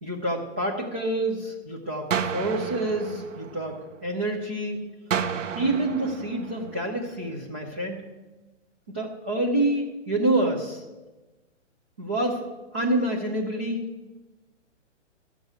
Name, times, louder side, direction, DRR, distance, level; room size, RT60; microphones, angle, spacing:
voice 1, 0.0-4.9 5.6-8.0 8.9-10.8 12.0-12.4 12.7-13.9, right 1 dB, 10° right, -3 dB, 0.3 m, -27 dB
sound 1, 2.1-4.2 5.1-7.2, right 7 dB, 80° right, 1.0 m, -32 dB
12.5 x 7.2 x 8.0 m, 1.2 s
hypercardioid pair, 140°, 37 cm